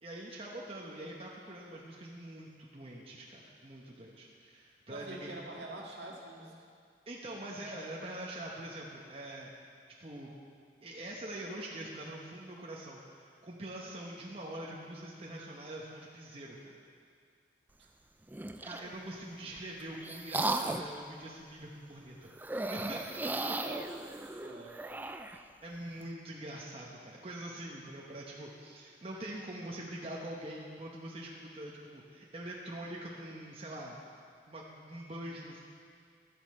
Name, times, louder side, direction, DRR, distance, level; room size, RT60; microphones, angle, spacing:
voice 1, 0.0-5.3 7.1-9.5 10.0-10.3 10.8-16.7 18.6-22.3 22.7-23.1 25.6-34.0 34.5-35.6, right 1 dB, 35° right, -3 dB, 0.9 m, -44 dB
voice 2, 4.9-6.6 17.8-17.9 20.4-20.5 23.5-23.9 24.4-24.8, right 2 dB, 70° right, -3 dB, 1.8 m, -45 dB
sound 1, 18.3-18.9 19.6-21.0 22.4-25.4, right 2 dB, 10° right, 0.3 m, -36 dB
12.5 x 9.6 x 4.3 m, 2.2 s
head